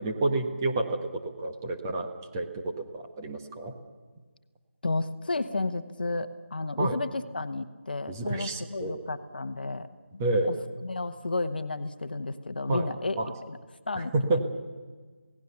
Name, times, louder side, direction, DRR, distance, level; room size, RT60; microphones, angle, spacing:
voice 1, 0.0-3.7 6.8-7.0 8.1-9.0 10.2-10.5 12.7-12.9 13.2-13.3 14.0-14.4, right 2 dB, 15° right, 3 dB, 1.3 m, -29 dB
voice 2, 4.8-9.9 10.1-10.2 10.5-10.6 10.8-13.2 13.5-13.6 13.9-14.1, left 3 dB, 45° left, 10 dB, 1.3 m, -32 dB
27.5 x 17.5 x 6.9 m, 1.4 s
figure-of-eight pair, 160°, 7 cm